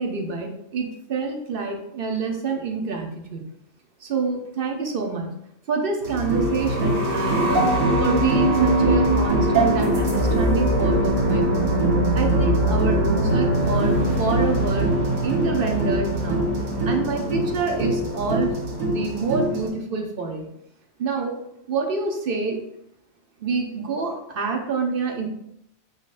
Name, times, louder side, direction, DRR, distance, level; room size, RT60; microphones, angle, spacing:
voice 1, 0.0-3.4 4.0-5.3 5.7-7.7 8.0-11.7 12.1-14.9 15.2-16.5 16.8-18.5 18.8-20.5 21.0-21.3 21.7-22.6 23.4-25.3, right 4 dB, 50° right, 2 dB, 0.7 m, -27 dB
sound 1, 6.0-19.7, right 1 dB, 80° right, 1.5 m, -21 dB
4.8 x 4.1 x 2.4 m, 0.77 s
omnidirectional pair, 1.4 m